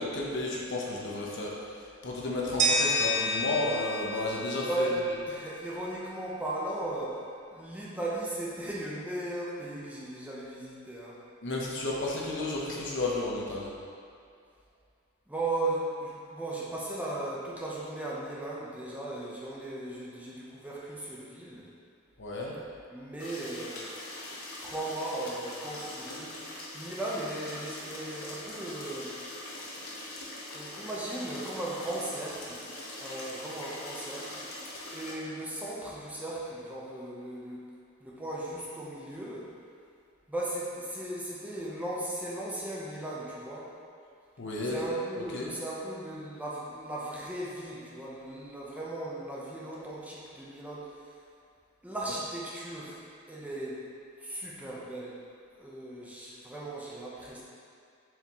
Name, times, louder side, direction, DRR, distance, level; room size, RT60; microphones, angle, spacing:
voice 1, 0.0-1.5 2.0-4.9 11.4-13.7 22.2-22.5 44.4-44.8 45.3-45.5, left 2 dB, 60° left, -3 dB, 1.0 m, -32 dB
sound 1, 2.6-5.5, equal, 35° right, 0.6 m, -30 dB
voice 2, 4.7-7.2 7.5-11.2 15.3-21.6 22.9-23.9 24.6-29.1 30.5-34.4 34.9-37.6 38.0-39.5 40.3-43.7 44.6-51.1 51.8-53.0 53.3-53.8 54.2-55.2 55.5-57.4, right 1 dB, 5° right, -6 dB, 0.9 m, -37 dB
sound 2, 23.2-35.1, left 1 dB, 80° left, 1.1 m, -42 dB
7.1 x 4.9 x 3.1 m, 2.4 s
head